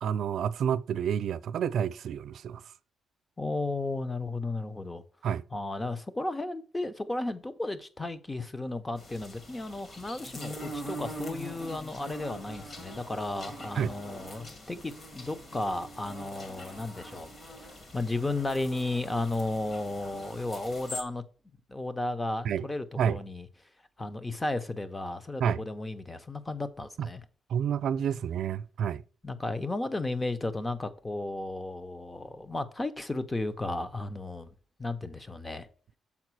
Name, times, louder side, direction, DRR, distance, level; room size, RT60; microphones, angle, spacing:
voice 1, 0.0-2.6 5.2-5.4 13.7-13.9 22.4-22.7 23.0-23.2 25.4-25.6 27.0-27.1 27.5-29.0, right 8 dB, 70° right, 0.4 m, -29 dB
voice 2, 3.4-5.0 5.5-17.3 17.9-21.2 21.7-23.5 24.0-27.2 29.2-34.5 34.8-35.7, left 2 dB, 15° left, 0.7 m, -34 dB
sound 1, 9.0-21.0, equal, 35° left, 1.7 m, -43 dB
7.2 x 4.8 x 4.6 m
cardioid pair, 135°, 0 cm